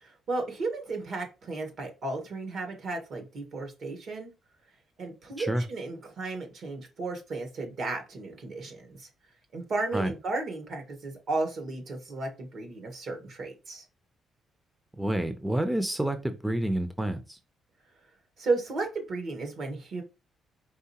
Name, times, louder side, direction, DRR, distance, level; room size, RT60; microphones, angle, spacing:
voice 1, 0.0-4.3 5.0-9.1 9.5-13.8 18.4-20.0, right 3 dB, 65° right, 4 dB, 1.4 m, -34 dB
voice 2, 15.0-17.4, right 1 dB, 5° right, 9 dB, 0.5 m, -28 dB
4.7 x 3.2 x 2.8 m, 0.28 s
cardioid pair, 90°, 0 cm